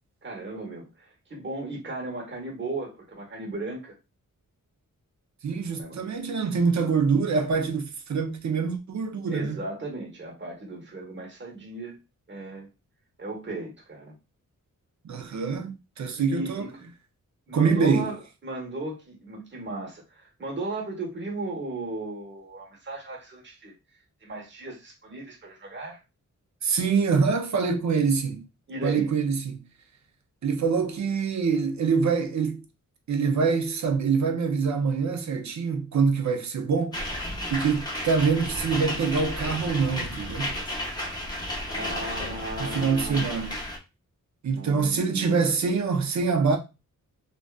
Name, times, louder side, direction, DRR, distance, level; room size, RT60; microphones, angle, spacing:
voice 1, 0.2-3.9 5.7-6.0 9.3-12.0 12.3-12.7 13.2-14.1 16.2-16.9 17.5-23.7 24.2-26.0 28.7-29.1 41.6-43.3 44.5-45.5, right 2 dB, 35° right, 1.1 m, -36 dB
voice 2, 5.4-9.6 15.0-16.7 17.5-18.1 26.6-28.5 28.8-29.6 30.4-32.6 33.1-37.0 37.5-40.6 42.6-43.6 44.4-46.6, right 5 dB, 60° right, 0.6 m, -25 dB
sound 1, 36.9-43.8, left 1 dB, 10° left, 0.8 m, -33 dB
2.5 x 2.2 x 2.3 m
cardioid pair, 65°, 33 cm